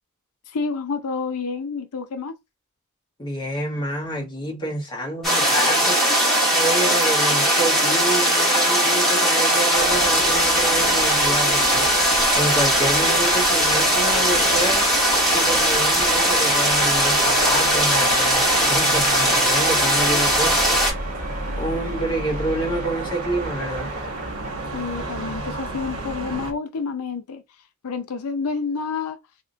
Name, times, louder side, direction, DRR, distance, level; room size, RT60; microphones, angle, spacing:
voice 1, 0.5-2.3 24.7-27.4 27.8-29.2, left 4 dB, 85° left, 0.5 m, -29 dB
voice 2, 3.2-6.0 6.5-11.9 12.3-14.9 15.3-20.8 21.6-23.9, right 1 dB, 20° left, 1.2 m, -28 dB
sound 1, 5.2-20.9, equal, ahead, 2.0 m, -19 dB
sound 2, 9.7-26.5, right 2 dB, 75° right, 1.0 m, -34 dB
sound 3, 16.4-25.2, right 2 dB, 35° right, 1.5 m, -38 dB
3.6 x 2.8 x 2.5 m
head